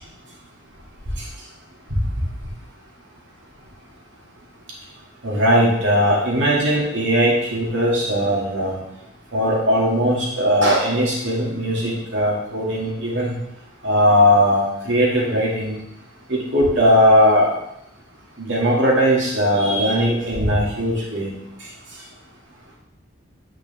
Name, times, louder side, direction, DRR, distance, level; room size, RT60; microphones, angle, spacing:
voice 1, 5.2-8.8 9.3-13.3 13.8-15.8 16.3-17.5 18.4-21.3, equal, 80° right, -4 dB, 2.2 m, -19 dB
8.8 x 5.0 x 3.5 m, 0.83 s
head